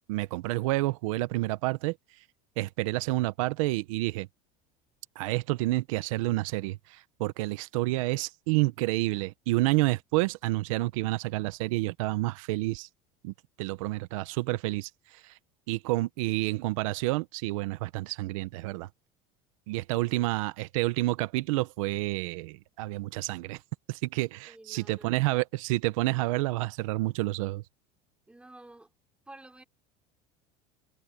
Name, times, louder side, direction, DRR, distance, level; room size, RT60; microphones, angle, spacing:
voice 1, 0.1-2.0 2.6-4.3 5.2-12.9 13.2-14.9 15.2-15.3 15.7-18.9 19.7-23.6 23.9-27.6, right 20 dB, 90° right, 0.9 m, -29 dB
voice 2, 24.5-25.1 28.3-28.9 29.3-29.6, right 2 dB, 5° right, 3.2 m, -51 dB
supercardioid pair, 130°, 17 cm